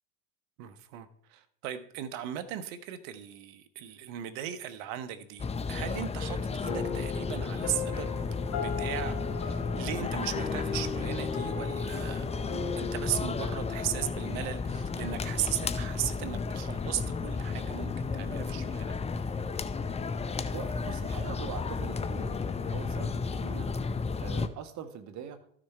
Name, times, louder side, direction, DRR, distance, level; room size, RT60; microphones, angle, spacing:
voice 1, 0.6-8.1 8.5-12.3 12.8-19.0, right 11 dB, 65° right, 12 dB, 1.2 m, -37 dB
sound 1, 5.4-24.5, left 4 dB, 15° left, 0.7 m, -33 dB
sound 2, 6.6-15.2, left 5 dB, 55° left, 2.8 m, -37 dB
voice 2, 20.5-23.7 24.1-25.4, right 8 dB, 45° right, 9 dB, 1.6 m, -42 dB
13.0 x 6.5 x 4.5 m, 0.65 s
hypercardioid pair, 90°, 39 cm